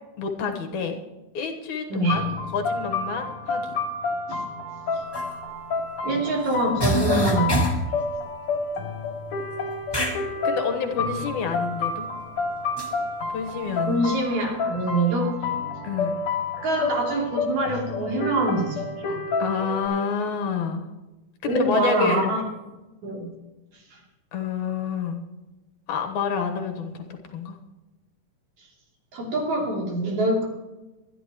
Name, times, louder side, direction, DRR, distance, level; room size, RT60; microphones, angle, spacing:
voice 1, 0.2-1.0 1.3-3.7 10.4-12.1 13.3-14.2 15.8-16.2 19.4-20.9 21.4-22.3 24.3-25.2 25.9-27.1 27.3-27.6, left 6 dB, 75° left, 4 dB, 2.8 m, -28 dB
voice 2, 1.9-2.2 4.3-4.4 4.9-5.0 6.0-7.6 13.9-15.3 16.6-19.2 21.4-22.4 23.0-23.3 23.9-24.0 29.1-30.4, right 2 dB, 70° right, -2 dB, 4.4 m, -25 dB
sound 1, 2.1-19.9, left 3 dB, 60° left, 3.6 m, -30 dB
sound 2, 5.1-5.3 6.5-6.6 6.8-7.9 9.9-10.2 12.8-12.9, right 1 dB, 15° left, 0.9 m, -24 dB
23.5 x 11.0 x 3.0 m, 1.1 s
omnidirectional pair, 3.5 m